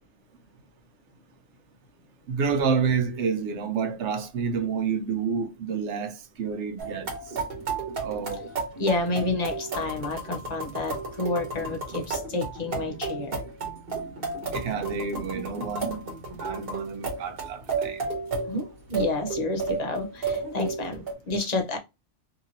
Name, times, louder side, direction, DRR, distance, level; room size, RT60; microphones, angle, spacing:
voice 1, 2.3-7.1 8.0-8.5 14.5-16.0 16.4-18.1, right 6 dB, 70° right, 0.9 m, -29 dB
sound 1, 6.8-21.1, right 4 dB, 55° right, 1.2 m, -33 dB
voice 2, 8.8-13.4 18.4-21.8, left 3 dB, 40° left, 0.7 m, -29 dB
2.9 x 2.8 x 2.6 m
omnidirectional pair, 1.3 m